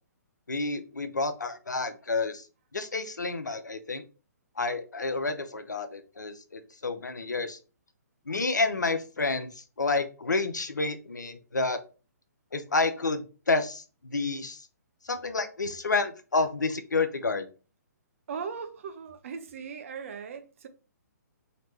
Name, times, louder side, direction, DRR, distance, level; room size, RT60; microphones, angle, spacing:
voice 1, 0.5-2.4 2.7-4.0 4.6-7.6 8.3-9.5 9.8-11.8 12.5-13.8 14.1-14.6 15.0-17.5, left 3 dB, 75° left, 0.7 m, -29 dB
voice 2, 18.3-20.7, right 6 dB, 45° right, 0.7 m, -38 dB
4.2 x 2.9 x 3.1 m
figure-of-eight pair, 130°, 10 cm